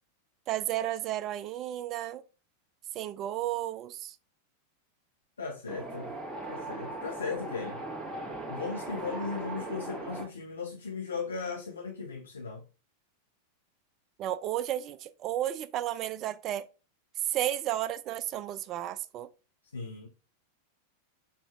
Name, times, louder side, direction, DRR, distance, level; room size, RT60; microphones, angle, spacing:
voice 1, 0.5-2.2 2.9-4.2 14.2-16.6 17.3-19.3, right 12 dB, 35° right, 0.4 m, -33 dB
voice 2, 5.4-6.1 6.5-7.8 8.5-12.6 19.7-20.1, left 4 dB, 75° left, 0.8 m, -37 dB
Wind, 5.7-10.2, right 2 dB, 5° left, 1.6 m, -39 dB
6.6 x 2.9 x 2.5 m
figure-of-eight pair, 90°, 0 cm